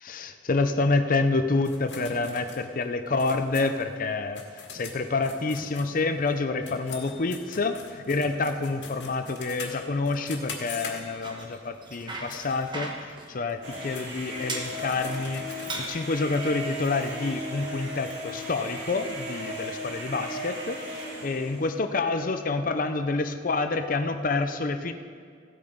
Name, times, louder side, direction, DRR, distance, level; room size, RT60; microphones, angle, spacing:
voice 1, 0.0-4.4 4.7-24.9, left 3 dB, 50° left, 8 dB, 0.6 m, -28 dB
sound 1, 1.6-6.3 6.6-11.4 11.9-12.4 12.9-13.0 13.5-15.9, left 4 dB, 70° left, 1.9 m, -43 dB
Bicycle, 11.0-19.3, right 2 dB, 25° right, 1.2 m, -42 dB
sound 2, 13.6-21.6, equal, 90° right, 2.4 m, -36 dB
15.5 x 8.5 x 5.3 m, 2.1 s
head